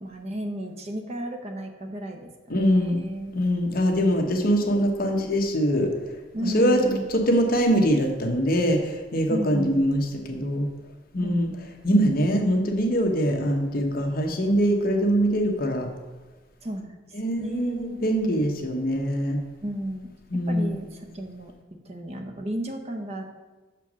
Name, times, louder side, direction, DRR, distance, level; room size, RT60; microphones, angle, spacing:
voice 1, 0.0-3.3 6.3-7.0 9.3-9.9 11.2-11.8 16.6-17.0 17.3-18.1 19.6-21.5 21.9-23.3, right 1 dB, 35° right, 4 dB, 0.8 m, -33 dB
voice 2, 2.5-3.0 3.3-5.9 6.4-10.7 11.1-11.5 11.8-15.9 17.1-19.4 20.3-20.8, equal, 50° left, 3 dB, 0.9 m, -23 dB
6.1 x 4.5 x 6.1 m, 1.2 s
head